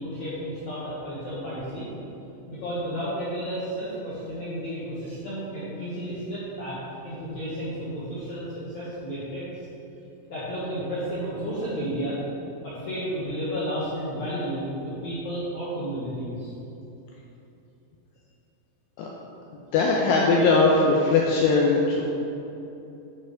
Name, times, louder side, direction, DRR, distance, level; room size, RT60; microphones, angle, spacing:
voice 1, 0.0-1.8 2.5-6.7 7.0-8.4 8.7-9.4 10.3-12.2 12.6-16.5, equal, 65° left, -11 dB, 1.8 m, -32 dB
voice 2, 19.7-22.0, left 3 dB, 85° left, -2 dB, 2.4 m, -20 dB
11.0 x 4.3 x 5.0 m, 2.9 s
omnidirectional pair, 5.5 m